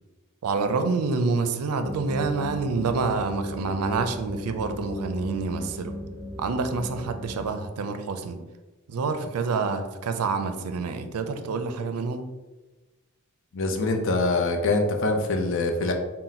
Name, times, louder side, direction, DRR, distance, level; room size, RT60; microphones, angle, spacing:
voice 1, 0.4-5.9 6.4-8.4 8.9-12.3, right 4 dB, 85° right, 8 dB, 0.4 m, -27 dB
sound 1, 1.8-7.5, left 1 dB, 15° left, 0.4 m, -38 dB
voice 2, 13.5-15.9, left 2 dB, 60° left, 4 dB, 0.5 m, -24 dB
3.9 x 2.1 x 4.2 m, 1.2 s
head